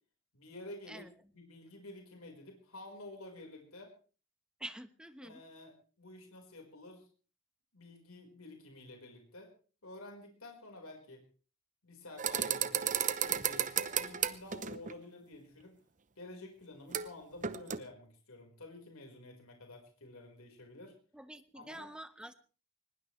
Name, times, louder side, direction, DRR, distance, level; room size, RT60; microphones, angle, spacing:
voice 1, 0.3-1.1 1.3-3.9 5.2-7.1 7.7-9.5 9.8-11.2 11.8-15.7 16.2-20.9 21.5-21.9, left 2 dB, 80° left, 2 dB, 4.5 m, -51 dB
voice 2, 4.6-5.4 21.1-22.3, right 1 dB, 5° right, 10 dB, 1.1 m, -47 dB
sound 1, 12.2-14.9 16.9-17.1 17.4-17.8, right 9 dB, 35° right, 0.8 m, -33 dB
22.0 x 20.5 x 3.2 m, 0.37 s
head